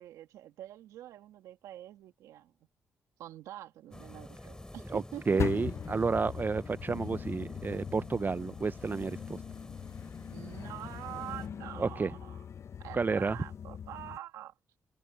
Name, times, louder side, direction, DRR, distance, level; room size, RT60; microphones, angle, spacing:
voice 1, 0.0-2.5 3.2-5.4 10.3-12.5 12.8-14.5, right 13 dB, 80° right, 2.2 m, -45 dB
sound 1, 3.9-11.5, left 1 dB, 15° left, 4.5 m, -48 dB
voice 2, 4.9-9.4 11.8-12.1 12.9-13.4, right 4 dB, 35° right, 0.6 m, -31 dB
sound 2, 5.4-14.2, left 8 dB, 60° left, 1.1 m, -40 dB
open air
supercardioid pair, 50°, 5 cm